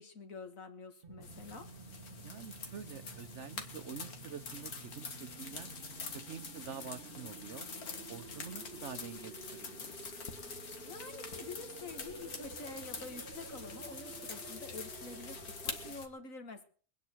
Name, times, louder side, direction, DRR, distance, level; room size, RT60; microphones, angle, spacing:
voice 1, 0.0-1.7 10.8-16.6, left 3 dB, 65° left, 7 dB, 2.2 m, -48 dB
sound 1, 1.0-15.9, right 4 dB, 40° right, 1.4 m, -51 dB
sound 2, 1.2-16.1, left 5 dB, 85° left, 2.3 m, -46 dB
voice 2, 2.2-5.7 6.1-7.7 8.1-9.9, right 7 dB, 55° right, 12 dB, 1.1 m, -47 dB
23.0 x 9.8 x 4.6 m, 0.43 s
omnidirectional pair, 1.5 m